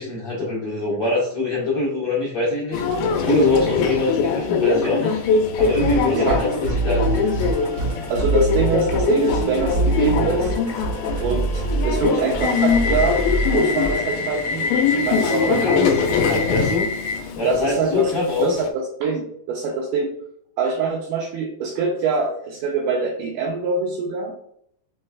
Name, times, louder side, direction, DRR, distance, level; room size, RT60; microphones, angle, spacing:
voice 1, 0.0-2.8 3.2-5.2 5.5-7.1 15.4-16.9 17.4-18.5, left 2 dB, 55° left, -6 dB, 1.7 m, -23 dB
Subway metro underground, 2.7-18.7, left 5 dB, 85° left, 2.4 m, -22 dB
Musical instrument, 5.6-14.0, right 2 dB, 55° right, 1.2 m, -25 dB
voice 2, 6.1-6.6 8.1-10.5 11.2-13.2 13.5-14.7 15.0-16.0 17.4-18.1 18.4-20.1 20.6-24.4, right 4 dB, 80° right, 0 dB, 1.9 m, -24 dB
5.5 x 3.2 x 2.3 m, 0.68 s
omnidirectional pair, 4.2 m